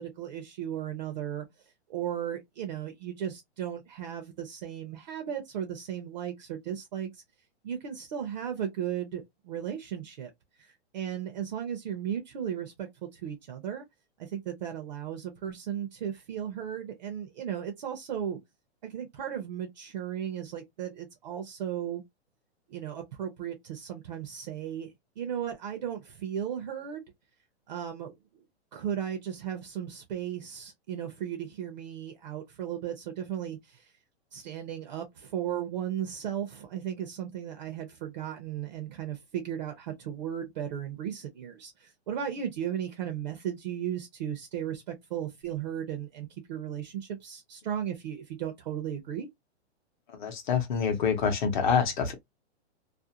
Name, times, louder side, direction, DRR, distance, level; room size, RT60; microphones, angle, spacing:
voice 1, 0.0-1.5 1.9-7.2 7.6-10.3 10.6-12.9 13.1-13.8 14.2-18.4 18.8-22.0 22.7-27.0 27.7-28.1 28.7-33.9 34.3-49.3, right 9 dB, 40° right, 0.5 m, -35 dB
voice 2, 50.1-52.1, left 6 dB, 45° left, 0.7 m, -26 dB
2.5 x 2.1 x 2.7 m
hypercardioid pair, 165°, 34 cm